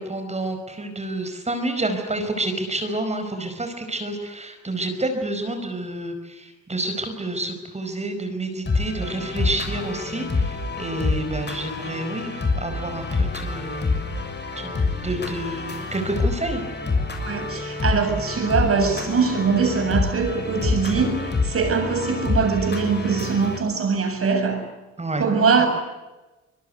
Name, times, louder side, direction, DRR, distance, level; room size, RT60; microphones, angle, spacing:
voice 1, 0.0-13.9 14.6-16.6 20.9-21.0 25.0-25.2 25.5-25.7, right 2 dB, 20° right, 6 dB, 5.0 m, -29 dB
sound 1, 8.7-23.6, left 3 dB, 35° left, 6.7 m, -27 dB
voice 2, 17.2-24.6 25.2-25.7, right 5 dB, 50° right, 6 dB, 7.5 m, -22 dB
25.0 x 22.0 x 8.2 m, 1.1 s
cardioid pair, 90°, 30 cm